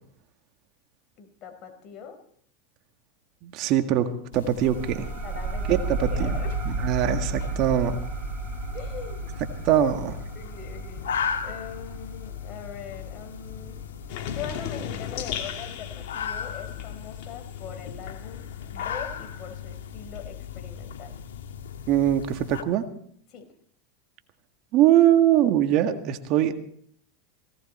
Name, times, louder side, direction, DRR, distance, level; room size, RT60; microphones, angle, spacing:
voice 1, 1.2-2.2 5.2-6.6 8.7-9.4 10.3-13.8 14.3-18.4 18.7-21.2 23.3-23.5 25.9-26.0, left 7 dB, 45° left, 5 dB, 4.5 m, -41 dB
voice 2, 3.4-4.1 4.3-5.1 5.7-6.4 6.8-8.0 9.6-10.2 21.9-22.9 24.7-26.5, right 11 dB, 55° right, 7 dB, 1.8 m, -22 dB
sound 1, 4.3-22.6, left 7 dB, 85° left, 1.8 m, -37 dB
sound 2, 4.6-13.8, right 3 dB, 35° right, 7.2 m, -33 dB
sound 3, 14.1-19.4 19.8-21.5, left 9 dB, 60° left, 2.7 m, -38 dB
18.0 x 18.0 x 4.3 m, 0.63 s
hypercardioid pair, 105°, 0 cm